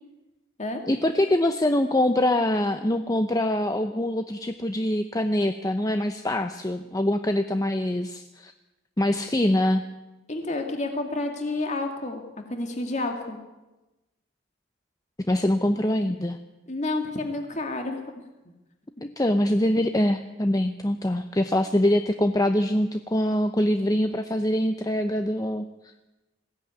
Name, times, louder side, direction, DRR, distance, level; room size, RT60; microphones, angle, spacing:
voice 1, 0.9-8.5 9.0-9.8 15.3-16.4 19.0-25.7, left 1 dB, 20° left, 8 dB, 0.8 m, -24 dB
voice 2, 10.3-12.2 12.5-13.4 16.7-18.2, left 2 dB, 40° left, 4 dB, 2.2 m, -30 dB
21.0 x 16.5 x 9.5 m, 1.1 s
head